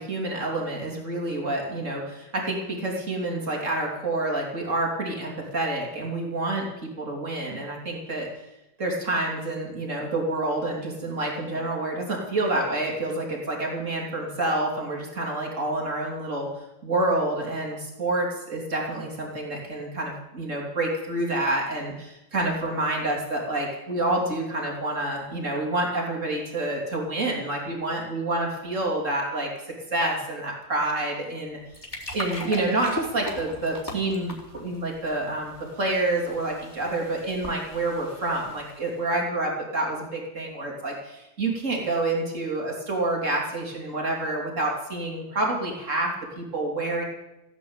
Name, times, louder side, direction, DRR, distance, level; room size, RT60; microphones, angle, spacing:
voice 1, 0.1-2.0 2.5-2.6 2.8-6.6 7.1-8.2 8.8-12.0 12.3-16.5 16.8-18.3 18.5-20.1 20.4-21.9 22.3-29.5 29.9-31.6 32.1-34.3 34.6-35.5 35.8-40.0 40.4-40.9 41.4-46.1 46.5-47.0, right 2 dB, 85° right, -1 dB, 3.6 m, -28 dB
sound 1, 31.5-39.0, left 1 dB, 20° left, 3.9 m, -40 dB
16.0 x 9.0 x 8.8 m, 0.93 s
omnidirectional pair, 1.3 m